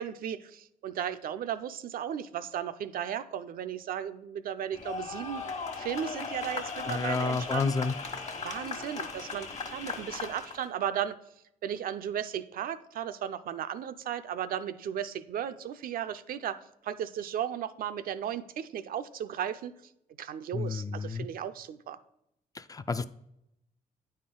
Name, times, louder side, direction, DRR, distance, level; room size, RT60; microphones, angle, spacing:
voice 1, 0.0-5.4 5.8-7.7 8.4-11.2 11.6-19.7 20.2-22.0, right 9 dB, 70° right, 0.5 m, -35 dB
sound 1, 4.7-10.7, left 4 dB, 50° left, 1.2 m, -38 dB
voice 2, 6.9-7.9 20.5-21.3 22.5-23.0, left 4 dB, 25° left, 0.3 m, -30 dB
9.3 x 4.3 x 3.7 m
cardioid pair, 75°, 15 cm